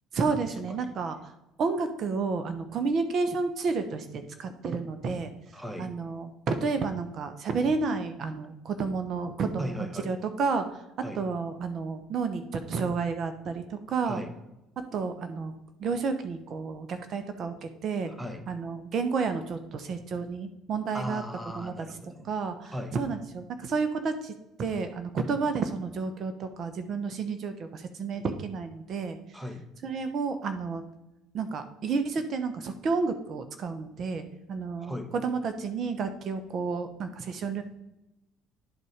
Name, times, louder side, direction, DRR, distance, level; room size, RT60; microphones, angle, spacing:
voice 1, 0.1-1.3 1.6-5.3 5.8-10.6 11.0-14.2 14.9-15.5 15.8-18.1 18.5-21.2 21.6-21.9 22.2-24.3 24.6-29.2 29.8-30.8 31.3-34.2 34.5-37.6, right 4 dB, 55° right, 9 dB, 0.9 m, -31 dB
voice 2, 5.5-5.9 9.6-10.1 11.0-11.2 14.1-14.3 18.1-18.5 20.9-22.3 22.7-23.0 29.3-29.7 34.8-35.1, left 1 dB, 5° right, 7 dB, 1.1 m, -38 dB
10.5 x 4.1 x 5.0 m, 0.92 s
supercardioid pair, 80°, 0 cm